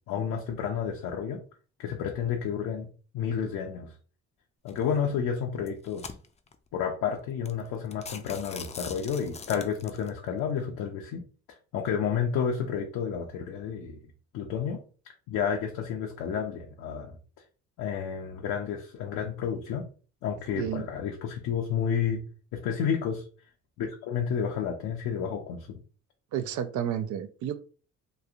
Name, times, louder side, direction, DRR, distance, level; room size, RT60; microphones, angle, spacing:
voice 1, 0.1-1.4 1.8-2.9 3.1-3.9 4.6-6.1 6.7-11.2 11.5-14.0 14.3-14.8 15.3-17.2 17.8-19.9 20.2-22.2 22.5-23.2 23.8-25.8, left 7 dB, 90° left, 1 dB, 0.6 m, -31 dB
sound 1, 4.7-5.0 5.6-6.5 7.1-7.2 7.5-7.6 7.9-10.1, left 5 dB, 25° left, 0.3 m, -42 dB
voice 2, 26.3-27.6, right 9 dB, 75° right, 11 dB, 0.5 m, -31 dB
3.1 x 2.5 x 2.4 m, 0.37 s
cardioid pair, 90°, 30 cm